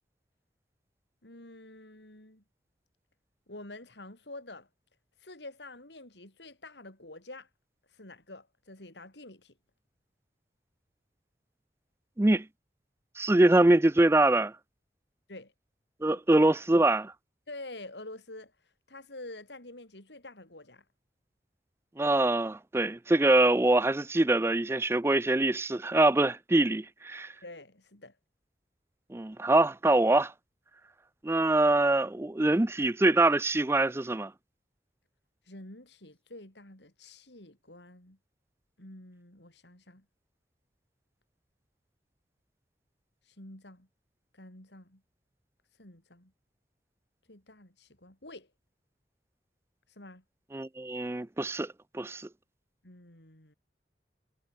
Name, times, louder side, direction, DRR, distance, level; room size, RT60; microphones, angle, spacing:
voice 1, 1.2-2.4 3.5-4.7 5.2-7.5 7.8-9.5 15.3-15.5 16.1-16.5 17.5-20.9 27.4-28.2 35.4-38.2 38.8-40.0 43.2-43.9 44.3-45.0 45.7-46.3 47.3-48.5 49.9-50.2 52.8-53.5, left 2 dB, 80° left, 5.9 m, -48 dB
voice 2, 13.2-14.5 16.0-17.1 22.0-27.3 29.1-30.3 31.2-34.3 50.5-52.3, right 2 dB, 15° right, 0.4 m, -24 dB
head